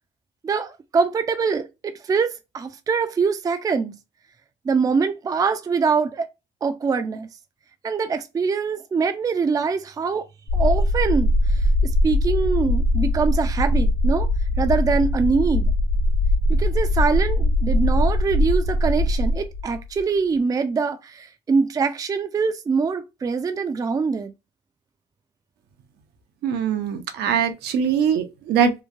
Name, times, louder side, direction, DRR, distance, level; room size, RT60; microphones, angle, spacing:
voice 1, 0.4-3.9 4.7-6.3 6.6-7.3 7.8-10.2 10.5-11.3 12.0-14.3 14.6-15.7 16.5-24.3, right 5 dB, 20° right, 0.4 m, -23 dB
sound 1, 10.5-20.0, left 1 dB, 70° left, 1.0 m, -21 dB
voice 2, 26.4-28.7, right 7 dB, 75° right, 0.7 m, -22 dB
3.0 x 2.1 x 2.5 m
cardioid pair, 110°, 17 cm